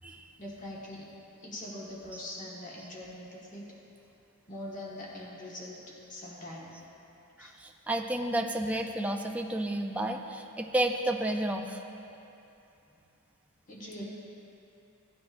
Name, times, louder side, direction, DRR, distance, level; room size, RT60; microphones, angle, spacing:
voice 1, 0.4-1.1 1.4-3.7 4.5-5.8 6.1-6.7 7.4-7.5 13.7-14.1, left 1 dB, 35° left, -5 dB, 1.6 m, -42 dB
voice 2, 7.4-11.8, right 1 dB, 5° right, 2 dB, 0.4 m, -31 dB
16.0 x 9.3 x 2.6 m, 2.8 s
head